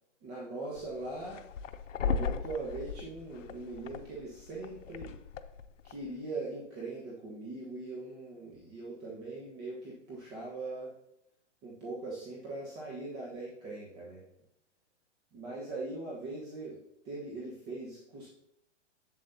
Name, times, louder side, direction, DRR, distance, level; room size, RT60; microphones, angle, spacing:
voice 1, 0.2-1.4 2.0-5.1 5.8-10.9 11.6-14.2 15.3-16.8 17.0-18.3, right 2 dB, 25° right, -4 dB, 1.3 m, -41 dB
sound 1, 0.8-6.1, left 6 dB, 90° left, 0.6 m, -38 dB
7.6 x 7.5 x 2.8 m, 0.85 s
hypercardioid pair, 145°, 36 cm